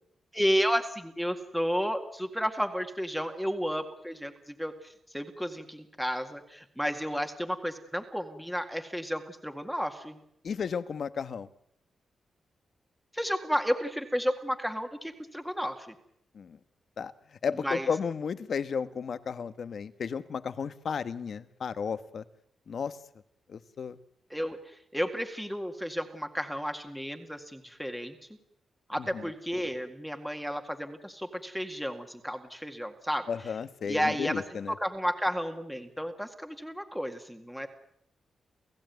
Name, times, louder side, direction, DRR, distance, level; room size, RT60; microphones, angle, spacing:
voice 1, 0.3-10.2 13.1-16.0 17.6-17.9 24.3-28.2 28.9-33.3 33.9-37.7, equal, ahead, 5 dB, 2.0 m, -32 dB
voice 2, 10.4-11.5 16.3-16.6 17.0-17.1 17.4-22.2 22.7-23.0 23.5-24.0 29.0-29.3 33.3-34.7, left 6 dB, 60° left, 12 dB, 1.3 m, -33 dB
30.0 x 15.5 x 9.4 m, 0.76 s
cardioid pair, 110°, 0 cm